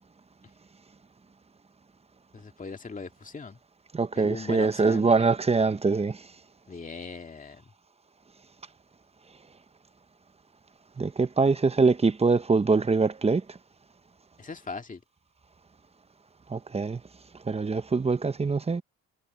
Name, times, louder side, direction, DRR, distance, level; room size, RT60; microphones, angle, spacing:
voice 1, 2.3-3.6 4.2-5.1 6.7-7.6 14.4-15.0, left 4 dB, 25° left, 2.1 m, -39 dB
voice 2, 3.9-6.3 11.0-13.6 16.5-17.0 17.4-18.8, right 4 dB, 20° right, 0.9 m, -24 dB
cardioid pair, 90°, 30 cm